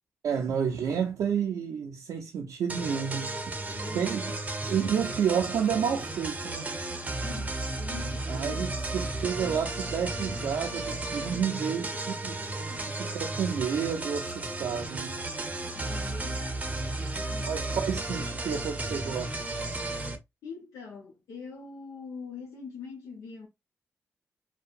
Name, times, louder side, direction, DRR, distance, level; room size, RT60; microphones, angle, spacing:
voice 1, 0.2-3.3 3.9-4.3 4.7-6.7 8.3-11.9 12.2-12.4 12.9-15.2 17.5-19.4, right 7 dB, 80° right, 0.4 m, -30 dB
sound 1, 2.7-20.2, right 2 dB, 25° right, 0.6 m, -34 dB
voice 2, 3.7-4.4 7.2-8.9 11.6-12.0 12.5-13.0 15.4-17.7 20.4-23.5, left 5 dB, 85° left, 0.7 m, -44 dB
2.7 x 2.2 x 2.4 m
supercardioid pair, 50°, 6 cm